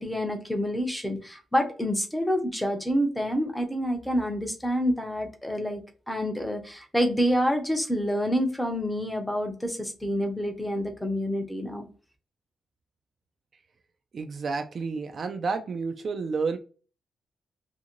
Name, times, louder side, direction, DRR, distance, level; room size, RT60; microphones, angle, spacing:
voice 1, 0.0-5.8 6.1-11.8, equal, 5° left, 4 dB, 0.6 m, -27 dB
voice 2, 14.1-16.6, right 4 dB, 45° right, 6 dB, 0.3 m, -30 dB
2.6 x 2.5 x 2.9 m, 0.37 s
wide cardioid pair, 150°, 0 cm